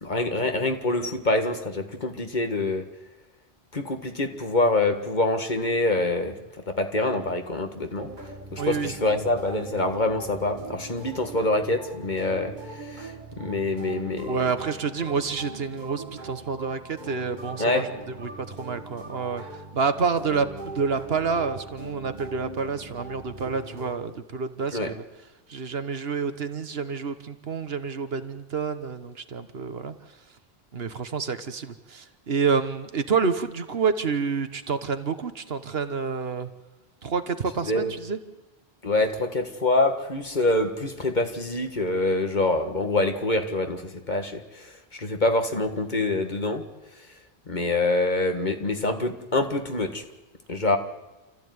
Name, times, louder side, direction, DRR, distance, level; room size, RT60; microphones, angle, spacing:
voice 1, 0.0-2.8 3.7-6.4 6.7-8.1 8.5-14.4 17.6-17.9 24.7-24.9 37.6-37.9 38.8-46.6 47.5-50.0 50.5-50.8, left 2 dB, 45° left, 6 dB, 1.9 m, -25 dB
sound 1, 7.9-24.0, right 2 dB, 45° right, 2.0 m, -40 dB
voice 2, 8.6-8.9 14.3-17.9 18.2-25.0 25.5-30.0 30.7-36.5 37.0-38.2, right 5 dB, 70° right, 10 dB, 1.4 m, -28 dB
29.0 x 14.0 x 9.5 m, 1.1 s
omnidirectional pair, 1.1 m